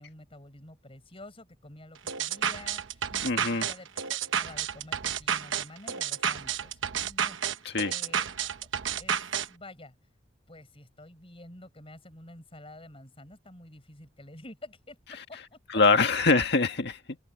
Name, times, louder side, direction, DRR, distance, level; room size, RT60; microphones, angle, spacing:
voice 1, 0.0-8.5 8.9-9.2 9.5-9.9 10.5-15.6, left 1 dB, 30° left, 7.3 m, -49 dB
sound 1, 2.1-9.5, right 8 dB, 80° right, 1.0 m, -30 dB
voice 2, 3.2-3.7 7.7-7.9 15.7-17.2, left 3 dB, 60° left, 1.8 m, -24 dB
open air
head